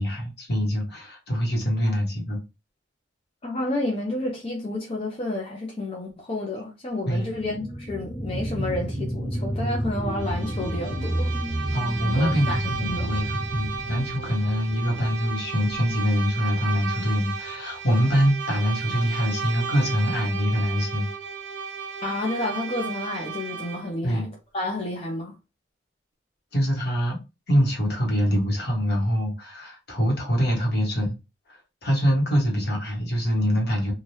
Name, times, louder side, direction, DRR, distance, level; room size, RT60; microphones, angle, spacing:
voice 1, 0.0-2.4 7.0-7.3 11.7-21.1 24.0-24.3 26.5-27.2 27.5-31.2 31.5-33.9, equal, 60° left, 1.2 m, -24 dB
voice 2, 3.4-11.3 12.2-13.1 22.0-24.3 24.5-25.3, left 2 dB, 35° left, 0.6 m, -30 dB
sound 1, 7.2-16.2 16.6-16.7, equal, 5° left, 1.5 m, -31 dB
Bowed string instrument, 10.1-24.0, right 6 dB, 90° right, 0.6 m, -34 dB
3.2 x 2.4 x 2.7 m
head